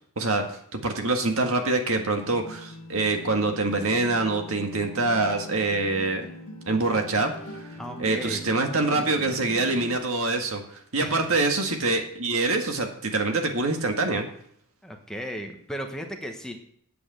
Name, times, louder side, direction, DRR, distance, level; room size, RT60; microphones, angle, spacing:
voice 1, 0.7-6.3 6.7-10.6 10.9-14.3, right 3 dB, 65° right, 4 dB, 1.8 m, -25 dB
sound 1, 2.0-10.0, equal, 75° left, 1.7 m, -41 dB
voice 2, 7.8-8.4 8.9-9.4 11.0-11.3 14.8-16.6, equal, 5° left, 3 dB, 1.1 m, -36 dB
8.6 x 7.9 x 7.8 m, 0.66 s
head